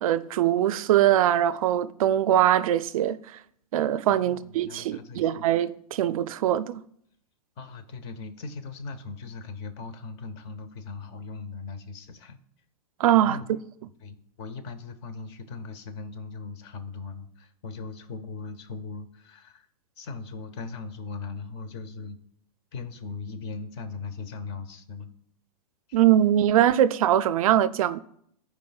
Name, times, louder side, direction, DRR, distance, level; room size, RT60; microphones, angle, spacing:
voice 1, 0.0-3.2 3.7-6.8 13.0-13.4 25.9-28.0, right 11 dB, 65° right, 0.4 m, -22 dB
voice 2, 4.1-5.5 7.6-12.4 13.1-13.5 14.0-19.7 20.0-22.2 22.7-25.1 25.9-26.0, left 4 dB, 45° left, 0.8 m, -39 dB
13.5 x 4.6 x 2.3 m
hypercardioid pair, 135°, 19 cm